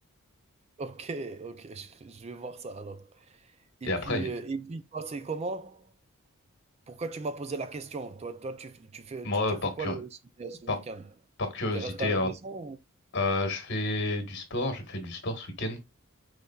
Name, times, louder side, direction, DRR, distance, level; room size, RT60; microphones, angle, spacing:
voice 1, 0.8-3.6 3.8-5.9 6.9-10.1 10.4-11.0 11.7-12.8, right 3 dB, 30° right, 0.3 m, -38 dB
voice 2, 3.8-4.3 9.2-9.9 10.7-10.8 11.4-12.3 13.1-15.8, left 2 dB, 50° left, 1.4 m, -30 dB
5.3 x 3.3 x 2.3 m
head